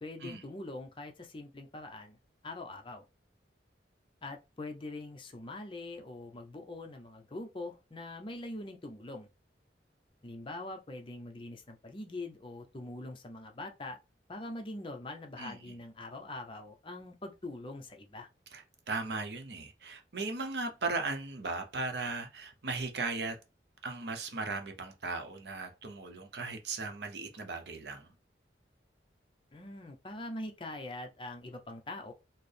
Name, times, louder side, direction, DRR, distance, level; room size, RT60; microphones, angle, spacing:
voice 1, 0.0-2.2 2.4-3.0 4.2-9.3 10.2-14.0 14.3-18.3 29.5-32.1, left 2 dB, 30° left, 0.6 m, -43 dB
voice 2, 15.4-15.8 18.5-23.4 23.8-28.1, right 3 dB, 65° right, 0.7 m, -37 dB
4.3 x 2.0 x 3.3 m
head